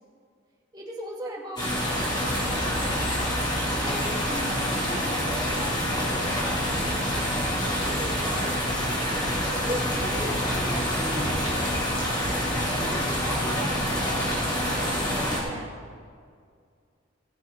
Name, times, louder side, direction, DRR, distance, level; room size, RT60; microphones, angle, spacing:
voice 1, 0.7-1.7 2.5-3.1 3.7-7.0 7.8-8.6 9.6-11.7 12.4-13.9 14.5-15.8, right 1 dB, 20° right, -3 dB, 2.1 m, -38 dB
sound 1, 1.6-15.4, equal, 25° left, 3.2 m, -27 dB
18.5 x 7.1 x 5.1 m, 2.1 s
head